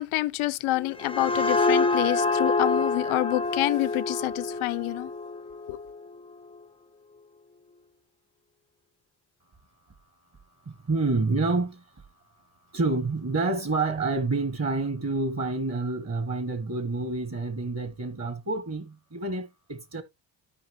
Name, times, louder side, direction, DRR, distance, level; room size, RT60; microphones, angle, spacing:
voice 1, 0.0-5.1 5.7-5.8, left 17 dB, 85° left, 0.7 m, -27 dB
sound 1, 0.7-6.2, left 3 dB, 10° left, 0.4 m, -27 dB
voice 2, 10.7-11.8 12.7-20.0, right 3 dB, 35° right, 1.2 m, -28 dB
13.0 x 4.9 x 2.8 m
cardioid pair, 115°, 47 cm